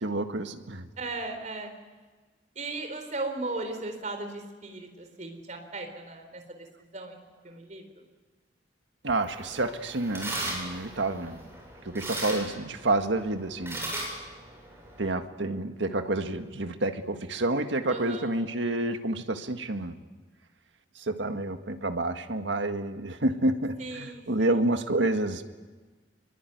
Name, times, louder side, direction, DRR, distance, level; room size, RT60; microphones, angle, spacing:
voice 1, 0.0-0.9 9.0-11.5 11.9-13.9 15.0-20.0 21.0-25.4, right 2 dB, 85° right, 7 dB, 1.8 m, -29 dB
voice 2, 1.0-1.7 2.5-6.4 6.8-7.2 7.4-7.8 17.9-18.3 23.8-24.6, right 2 dB, 40° right, 5 dB, 4.3 m, -37 dB
sound 1, 9.1-15.1, right 1 dB, 15° right, 7.5 m, -38 dB
25.0 x 23.0 x 9.4 m, 1.3 s
head